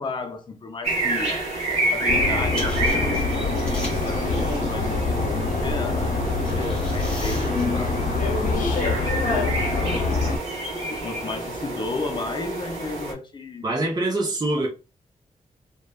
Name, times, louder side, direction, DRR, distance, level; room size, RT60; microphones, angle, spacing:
voice 1, 0.0-10.4 10.9-13.7, left 3 dB, 35° left, 0.6 m, -34 dB
sound 1, 0.8-13.1, right 2 dB, 55° right, 1.2 m, -29 dB
sound 2, 2.1-10.4, left 3 dB, 85° left, 0.8 m, -25 dB
sound 3, 2.4-7.6, left 1 dB, 5° left, 1.1 m, -42 dB
voice 2, 13.6-14.7, right 2 dB, 30° right, 0.6 m, -24 dB
3.0 x 2.2 x 2.2 m
wide cardioid pair, 140°, 14 cm